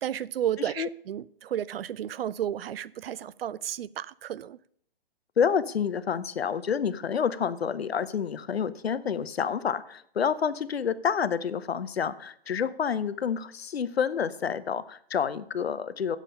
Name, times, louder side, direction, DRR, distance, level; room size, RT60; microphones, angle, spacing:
voice 1, 0.0-4.6, right 10 dB, 70° right, 0.5 m, -32 dB
voice 2, 0.6-0.9 5.4-16.2, left 7 dB, 85° left, 0.8 m, -28 dB
8.4 x 7.4 x 5.4 m
hypercardioid pair, 135°, 30 cm